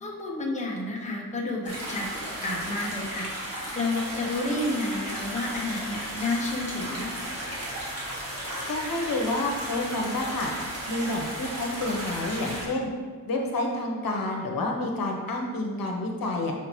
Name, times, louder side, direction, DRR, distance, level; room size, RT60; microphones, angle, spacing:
voice 1, 0.0-2.1 2.4-7.1, left 2 dB, 20° left, -2 dB, 0.8 m, -30 dB
sound 1, 1.6-12.6, right 1 dB, 40° right, 1.7 m, -35 dB
voice 2, 8.7-10.5 10.9-12.9 13.3-16.5, left 2 dB, 75° left, 1 dB, 1.0 m, -29 dB
6.2 x 5.6 x 3.1 m, 1.5 s
wide cardioid pair, 160°, 35 cm